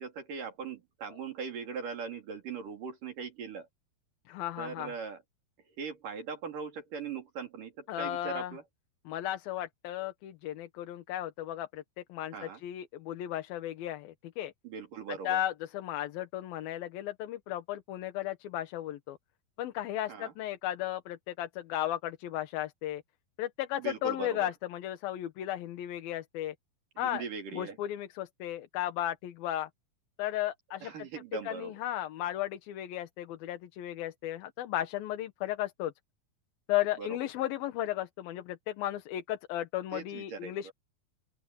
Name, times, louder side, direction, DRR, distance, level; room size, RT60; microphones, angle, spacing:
voice 1, 0.0-3.7 4.6-5.2 5.7-8.6 12.3-12.6 14.6-15.4 20.1-20.3 23.8-24.5 27.0-27.8 30.8-31.7 37.0-37.1 39.9-40.7, right 5 dB, 65° right, 4.8 m, -40 dB
voice 2, 4.3-4.9 7.9-8.6 9.1-14.5 15.2-19.2 19.6-23.0 23.4-26.5 27.0-27.2 27.5-29.7 30.2-31.1 31.4-35.9 36.7-40.7, left 13 dB, 90° left, 3.1 m, -35 dB
open air
omnidirectional pair, 4.1 m